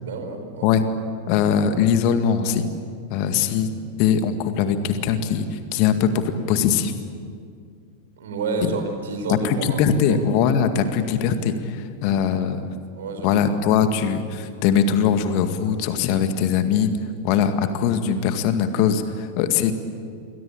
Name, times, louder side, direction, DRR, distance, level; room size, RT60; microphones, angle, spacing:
voice 1, 0.0-0.7 8.2-9.8 10.1-10.2 12.3-12.5 12.9-13.4, right 4 dB, 60° right, 6 dB, 4.7 m, -30 dB
voice 2, 1.3-2.7 3.1-3.7 4.0-6.9 8.6-8.7 9.3-12.6 13.2-17.0 17.2-19.7, left 7 dB, 45° left, 9 dB, 2.0 m, -21 dB
28.5 x 22.5 x 8.7 m, 2.2 s
figure-of-eight pair, 90°, 0 cm